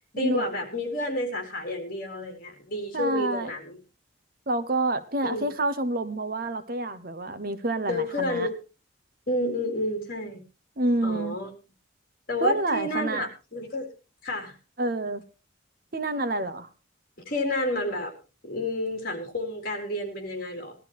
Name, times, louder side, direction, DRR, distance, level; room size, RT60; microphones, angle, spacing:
voice 1, 0.1-3.8 5.2-5.5 7.9-8.5 9.3-10.4 11.0-11.5 12.3-13.9 14.2-14.6 17.3-18.1 18.4-20.8, left 1 dB, 45° left, 4 dB, 3.8 m, -30 dB
voice 2, 2.9-3.5 4.5-8.5 10.8-11.4 12.4-13.3 14.8-15.2 15.9-16.7, right 2 dB, 45° right, 11 dB, 1.0 m, -28 dB
20.0 x 12.5 x 3.1 m, 0.31 s
head